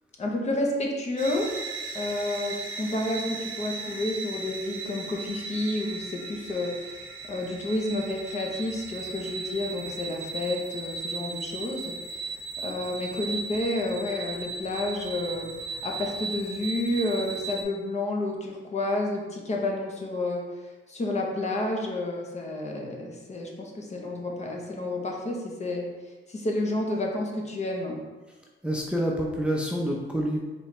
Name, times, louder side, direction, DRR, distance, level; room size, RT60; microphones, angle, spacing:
voice 1, 0.2-1.5 1.9-6.9 7.3-12.3 12.6-15.5 15.8-20.4 20.9-25.8 26.3-28.0, left 2 dB, 35° left, 0 dB, 0.9 m, -30 dB
sound 1, 1.2-17.6, right 4 dB, 80° right, 0.7 m, -37 dB
voice 2, 28.6-30.5, equal, 5° right, -2 dB, 0.6 m, -27 dB
4.4 x 3.4 x 3.2 m, 1.3 s
cardioid pair, 90°, 20 cm